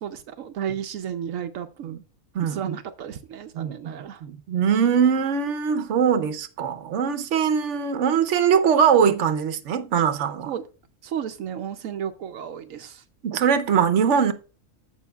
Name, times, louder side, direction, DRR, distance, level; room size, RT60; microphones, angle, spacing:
voice 1, 0.0-2.0 2.5-4.2 10.5-10.6 11.0-13.0, right 9 dB, 85° right, 1.1 m, -33 dB
voice 2, 2.3-2.8 3.5-10.5 13.2-14.3, right 7 dB, 65° right, 1.1 m, -22 dB
15.5 x 5.2 x 2.3 m
omnidirectional pair, 1.4 m